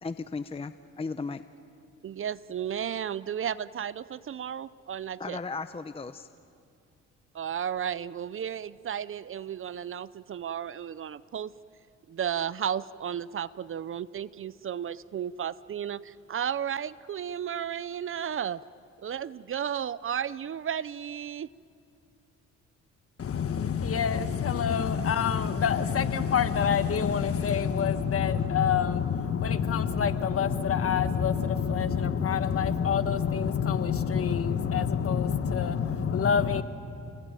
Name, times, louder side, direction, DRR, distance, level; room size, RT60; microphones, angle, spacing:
voice 1, 0.0-1.4 5.2-6.3, left 4 dB, 20° left, 0.7 m, -36 dB
voice 2, 2.0-5.4 7.3-11.5 12.1-18.6 19.0-21.5, right 9 dB, 45° right, 0.6 m, -33 dB
voice 3, 23.2-36.6, left 7 dB, 50° left, 1.5 m, -26 dB
29.0 x 20.0 x 9.2 m
cardioid pair, 90°, 30 cm